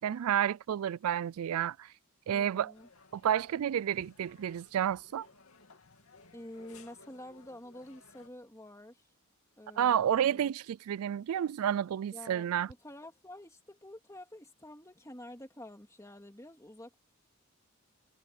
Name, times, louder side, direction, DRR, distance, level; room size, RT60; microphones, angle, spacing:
voice 1, 0.0-1.9 2.3-2.7 3.1-5.3 9.8-12.7, right 9 dB, 80° right, 0.3 m, -30 dB
voice 2, 2.3-2.9 6.3-9.0 9.6-10.5 12.1-17.0, left 1 dB, 15° left, 2.2 m, -49 dB
sound 1, 2.7-8.3, left 3 dB, 75° left, 2.5 m, -59 dB
head